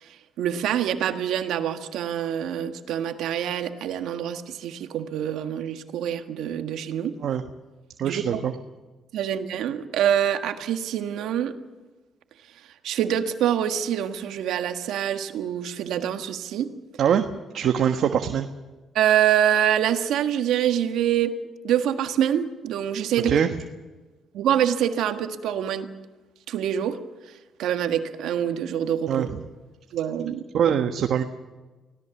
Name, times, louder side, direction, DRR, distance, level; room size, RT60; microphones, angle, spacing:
voice 1, 0.4-7.1 8.0-8.4 9.1-11.5 12.8-16.7 18.9-21.3 21.6-23.3 24.3-25.9 26.5-27.0 27.3-27.4 27.6-29.3 29.9-30.4, right 10 dB, 85° right, 7 dB, 1.6 m, -25 dB
voice 2, 8.0-8.5 17.0-17.3 17.5-18.5 23.2-23.5 29.1-29.3 30.5-31.2, right 8 dB, 70° right, 5 dB, 1.3 m, -22 dB
25.0 x 17.0 x 7.1 m, 1.2 s
cardioid pair, 90°, 0 cm